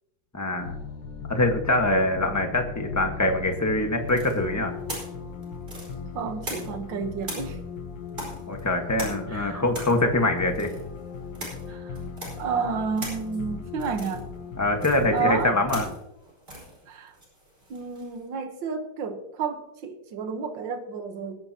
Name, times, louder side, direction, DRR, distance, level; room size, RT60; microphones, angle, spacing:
voice 1, 0.3-0.7 1.3-4.7 8.5-10.7 14.6-15.8, left 1 dB, 10° left, 4 dB, 1.3 m, -24 dB
sound 1, 0.6-16.0, left 5 dB, 75° left, 1.8 m, -38 dB
sound 2, 4.1-6.9 7.2-18.2, right 1 dB, 25° right, 5.1 m, -40 dB
voice 2, 6.1-7.6 9.3-9.6 11.7-12.0 12.4-14.3 15.1-15.6 16.9-17.2 17.7-21.4, right 5 dB, 75° right, 6 dB, 1.9 m, -31 dB
21.0 x 9.8 x 2.9 m, 0.89 s
omnidirectional pair, 2.1 m